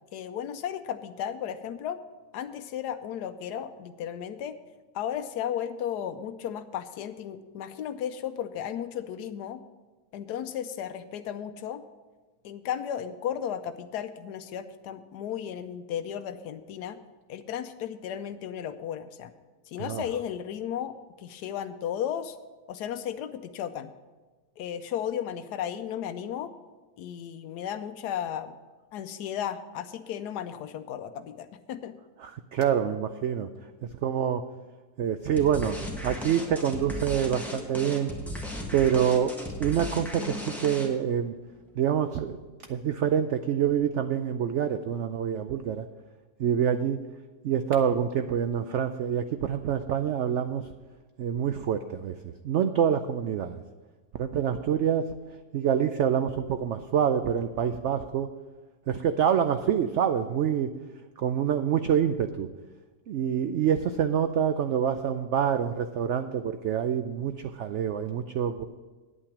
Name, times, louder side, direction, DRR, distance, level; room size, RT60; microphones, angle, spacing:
voice 1, 0.1-2.0 2.3-4.6 4.9-9.6 10.1-11.8 12.4-17.0 17.3-19.3 19.7-22.4 22.7-23.9 24.6-26.5 27.0-28.5 28.9-32.0, left 9 dB, 85° left, 10 dB, 1.2 m, -34 dB
voice 2, 32.2-33.5 33.8-34.4 35.0-35.8 36.0-38.1 38.7-41.4 41.8-42.4 42.7-45.9 46.4-47.0 47.4-50.7 51.2-53.6 54.1-55.1 55.5-58.3 58.9-60.7 61.2-62.5 63.1-68.6, right 8 dB, 70° right, 9 dB, 0.7 m, -26 dB
sound 1, 35.4-41.1, equal, ahead, 1.3 m, -36 dB
9.6 x 8.7 x 6.0 m, 1.3 s
omnidirectional pair, 1.7 m